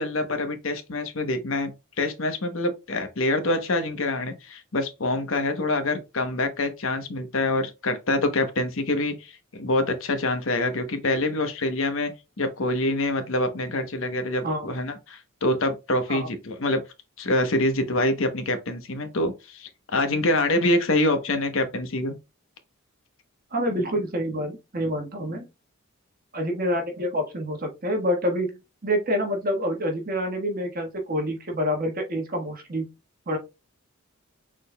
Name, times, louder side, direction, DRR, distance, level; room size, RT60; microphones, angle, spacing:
voice 1, 0.0-1.7 2.0-12.1 12.4-16.8 17.2-22.2, left 2 dB, 65° left, 0.9 m, -25 dB
voice 2, 23.5-25.4 26.3-32.8 33.3-33.4, equal, 45° right, 1.4 m, -27 dB
6.5 x 3.7 x 2.2 m
head